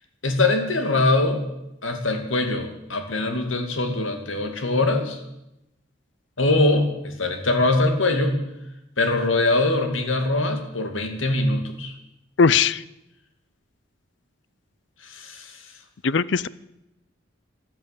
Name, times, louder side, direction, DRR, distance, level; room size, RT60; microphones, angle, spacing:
voice 1, 0.2-1.4 1.8-5.2 6.4-8.4 9.0-11.9 15.0-15.7, left 2 dB, 85° left, 5 dB, 2.4 m, -22 dB
voice 2, 12.4-12.8 16.0-16.5, left 5 dB, 60° left, 20 dB, 0.5 m, -19 dB
14.0 x 12.0 x 8.4 m, 0.89 s
head